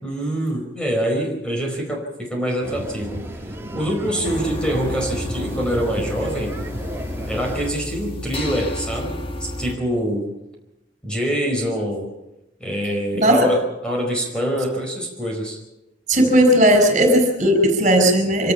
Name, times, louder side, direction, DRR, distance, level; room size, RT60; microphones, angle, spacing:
voice 1, 0.0-3.2 3.7-6.6 7.3-10.3 11.0-12.1 12.6-15.6, equal, 5° left, 1 dB, 5.0 m, -25 dB
sound 1, 2.6-7.7, equal, 15° right, 2.2 m, -33 dB
sound 2, 4.2-9.8, left 1 dB, 30° left, 1.7 m, -31 dB
voice 2, 13.1-13.5 16.1-18.5, equal, 45° right, 6 dB, 5.1 m, -16 dB
26.0 x 18.0 x 5.7 m, 0.91 s
head